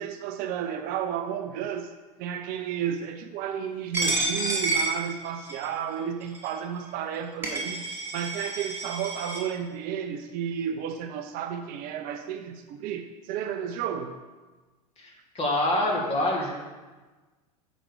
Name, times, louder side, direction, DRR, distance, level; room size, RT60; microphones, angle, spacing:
voice 1, 0.0-1.9 2.2-7.9 8.1-14.1, right 8 dB, 45° right, 7 dB, 0.6 m, -32 dB
Coin (dropping), 3.9-5.7 6.4-6.5 7.1-7.2 7.4-9.4, right 2 dB, 10° right, 2.3 m, -29 dB
voice 2, 15.0-16.5, left 1 dB, 30° left, 0 dB, 2.0 m, -26 dB
7.4 x 5.1 x 4.9 m, 1.3 s
hypercardioid pair, 100°, 20 cm